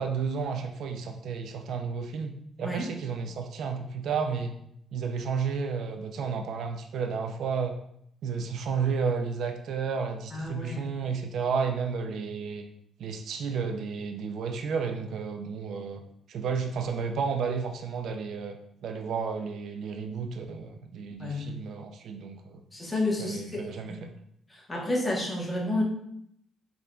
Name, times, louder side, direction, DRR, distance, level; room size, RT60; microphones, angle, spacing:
voice 1, 0.0-4.5 4.9-7.8 8.2-12.6 13.0-16.0 16.3-22.6 23.2-24.1, right 5 dB, 70° right, 6 dB, 0.3 m, -32 dB
voice 2, 10.3-11.0 21.2-21.5 22.7-24.0 24.5-25.8, left 1 dB, 15° left, -3 dB, 1.1 m, -31 dB
3.7 x 3.5 x 2.2 m, 0.72 s
cardioid pair, 90°, 0 cm